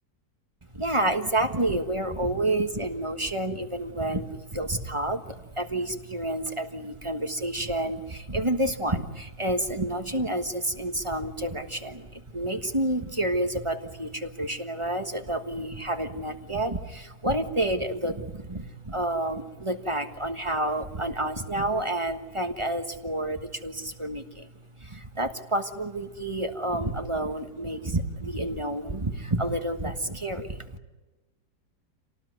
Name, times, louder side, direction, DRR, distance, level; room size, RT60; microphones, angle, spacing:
voice 1, 0.7-24.5 24.8-30.7, right 1 dB, 20° right, 6 dB, 1.3 m, -29 dB
27.0 x 19.0 x 9.5 m, 1.1 s
omnidirectional pair, 1.7 m